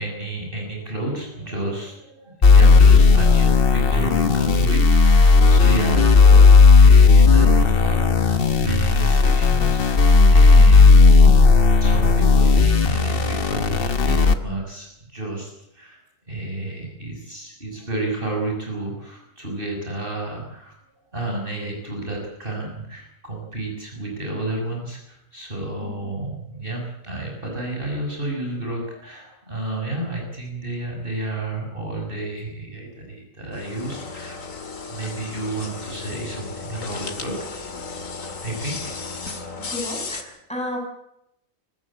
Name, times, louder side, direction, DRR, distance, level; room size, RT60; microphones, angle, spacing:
voice 1, 0.0-11.1 11.8-16.0 16.3-20.7 21.1-34.4 34.9-37.5 38.4-38.9, right 2 dB, 40° right, 0 dB, 6.5 m, -31 dB
sound 1, 2.4-14.3, left 4 dB, 45° left, 1.4 m, -13 dB
sound 2, 33.5-40.2, left 4 dB, 70° left, 2.6 m, -34 dB
voice 2, 39.6-40.8, left 1 dB, 5° left, 0 dB, 7.1 m, -33 dB
24.5 x 15.0 x 8.6 m, 0.78 s
omnidirectional pair, 1.4 m